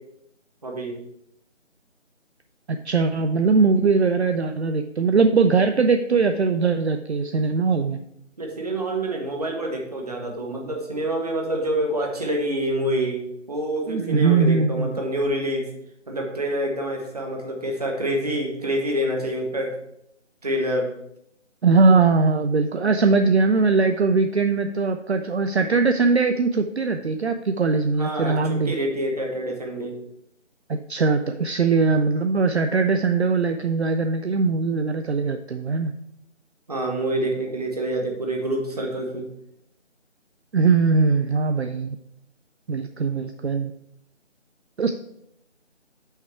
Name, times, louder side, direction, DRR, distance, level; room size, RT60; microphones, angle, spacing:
voice 1, 0.6-1.0 8.4-13.2 13.5-15.6 16.1-19.7 20.4-20.9 27.9-29.9 36.7-39.3, right 1 dB, 30° right, 1 dB, 1.1 m, -27 dB
voice 2, 2.7-8.0 13.9-15.0 21.6-28.7 30.7-35.9 40.5-42.0 42.7-43.7 44.8-44.9, right 4 dB, 60° right, 7 dB, 0.5 m, -21 dB
5.8 x 5.6 x 4.5 m, 0.80 s
figure-of-eight pair, 165°, 37 cm